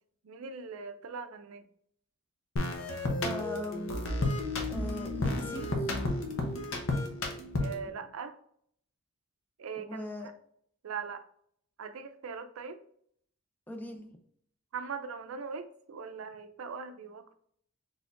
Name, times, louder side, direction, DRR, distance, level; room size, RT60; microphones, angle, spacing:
voice 1, 0.2-1.6 7.6-8.3 9.6-10.3 10.8-11.2 11.8-12.8 14.7-17.3, right 5 dB, 85° right, 10 dB, 0.5 m, -40 dB
sound 1, 2.6-7.9, left 2 dB, 70° left, 0.8 m, -32 dB
voice 2, 3.2-3.9 4.7-5.7 7.8-8.1 9.8-10.3 13.7-14.1, left 1 dB, 10° left, 3 dB, 0.5 m, -40 dB
4.3 x 3.5 x 2.5 m, 0.65 s
head